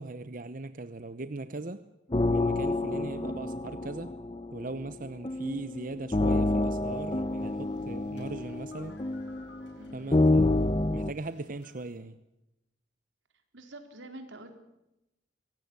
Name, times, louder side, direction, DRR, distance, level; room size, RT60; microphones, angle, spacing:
voice 1, 0.0-1.8 2.3-4.2 4.5-9.0 9.9-12.2, right 2 dB, 45° right, 12 dB, 0.9 m, -39 dB
sound 1, 2.1-11.1, left 2 dB, 30° left, 0.8 m, -28 dB
sound 2, 6.4-12.0, left 3 dB, 80° left, 7.8 m, -59 dB
voice 2, 13.5-14.5, right 2 dB, 90° right, 7 dB, 4.1 m, -46 dB
24.0 x 18.0 x 8.8 m, 0.89 s
head